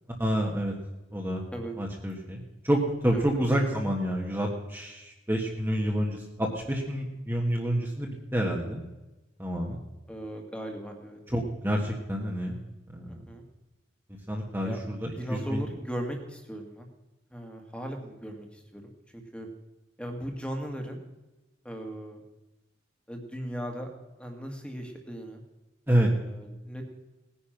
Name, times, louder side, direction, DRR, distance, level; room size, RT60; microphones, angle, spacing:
voice 1, 0.2-0.7 1.1-1.4 1.8-8.8 9.4-9.8 11.3-12.6 12.9-13.2 14.3-15.6 25.9-26.1, equal, 10° right, -1 dB, 1.6 m, -28 dB
voice 2, 3.1-3.5 10.1-11.2 13.1-13.4 14.6-14.8 15.2-16.9 17.3-18.8 19.1-19.5 20.0-21.0 21.6-22.2 23.1-23.9 24.2-25.4 26.2-26.8, equal, 5° left, 3 dB, 2.0 m, -37 dB
19.0 x 10.0 x 6.0 m, 1.0 s
head